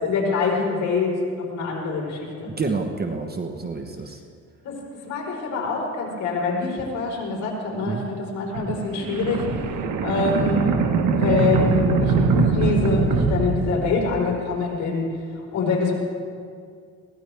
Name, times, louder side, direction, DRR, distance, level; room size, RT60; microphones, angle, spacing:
voice 1, 0.0-2.5 4.6-4.8 5.0-9.7 10.0-10.7 11.1-15.2 15.5-16.0, left 4 dB, 75° left, -2 dB, 4.7 m, -25 dB
voice 2, 2.5-4.2 7.8-8.1, right 4 dB, 30° right, 4 dB, 1.2 m, -28 dB
sound 1, 8.5-14.4, right 5 dB, 80° right, 1.5 m, -22 dB
22.0 x 17.0 x 3.5 m, 2.2 s
cardioid pair, 90°, 30 cm